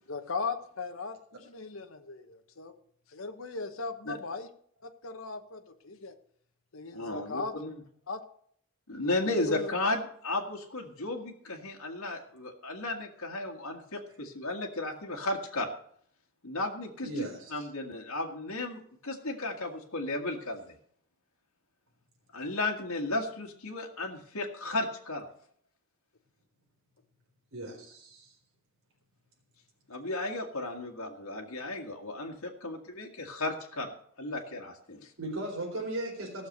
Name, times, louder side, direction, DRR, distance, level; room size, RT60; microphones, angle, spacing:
voice 1, 0.1-2.7 3.1-4.5 4.8-6.1 6.7-7.5 8.1-8.2 9.0-9.7, left 4 dB, 70° left, 6 dB, 1.0 m, -38 dB
voice 2, 6.9-7.7 8.9-15.7 16.4-17.1 17.5-20.8 22.3-25.3 29.9-35.1, left 2 dB, 85° left, 0 dB, 1.8 m, -34 dB
voice 3, 17.0-17.7 27.5-28.3 35.2-36.5, right 1 dB, 65° right, 0 dB, 4.0 m, -37 dB
15.5 x 6.7 x 6.6 m, 0.62 s
head